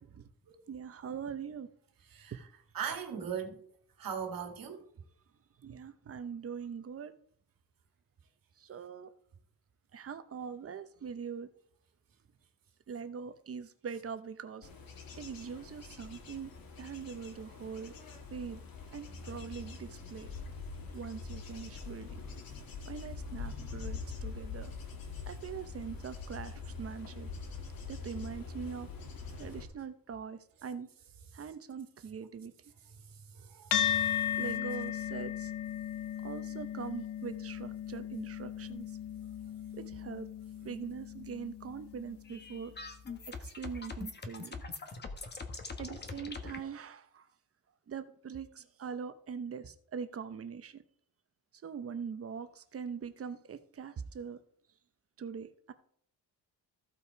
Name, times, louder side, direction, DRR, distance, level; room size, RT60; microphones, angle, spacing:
voice 1, 0.7-1.7 5.6-7.1 8.6-9.1 9.9-11.5 12.9-14.7 15.2-16.5 16.8-17.9 18.3-18.6 18.9-20.3 20.9-22.2 22.9-24.7 25.3-27.3 27.9-28.9 29.4-30.9 31.3-32.5 34.3-35.5 36.2-38.9 39.7-40.3 40.6-42.7 43.4-44.5 45.8-47.3 47.9-50.8 51.6-54.4 55.2-55.7, right 6 dB, 35° right, 0.8 m, -42 dB
voice 2, 2.1-2.4 2.7-3.7 4.0-4.9 22.4-22.5 32.9-34.4, right 7 dB, 55° right, 1.8 m, -40 dB
Bird / Insect / Wind, 14.6-29.6, left 4 dB, 60° left, 2.0 m, -44 dB
sound 1, 33.7-42.4, left 10 dB, 80° left, 0.9 m, -36 dB
sound 2, 42.2-46.6, left 4 dB, 25° left, 1.2 m, -42 dB
14.5 x 5.6 x 4.6 m
cardioid pair, 150°, 40 cm